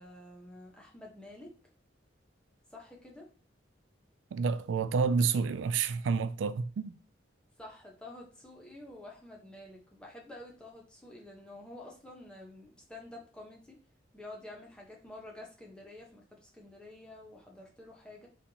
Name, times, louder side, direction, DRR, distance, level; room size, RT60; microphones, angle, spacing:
voice 1, 0.0-1.5 2.7-3.3 7.6-13.8 14.1-18.3, left 1 dB, 5° left, 1.0 m, -49 dB
voice 2, 4.3-7.0, right 5 dB, 90° right, 0.3 m, -29 dB
4.2 x 3.5 x 2.8 m
head